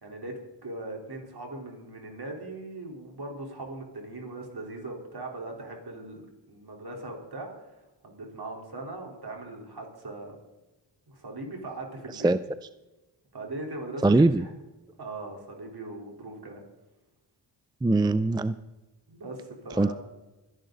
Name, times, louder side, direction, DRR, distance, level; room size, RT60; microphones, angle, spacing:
voice 1, 0.0-6.2 6.5-7.5 8.0-10.4 11.1-12.3 13.3-14.5 15.0-16.6 19.1-19.9, right 2 dB, 55° right, 1 dB, 4.0 m, -39 dB
voice 2, 14.0-14.5 17.8-18.5 19.8-19.9, right 2 dB, 10° right, 13 dB, 0.4 m, -21 dB
24.0 x 11.0 x 4.0 m, 1.1 s
cardioid pair, 70°, 44 cm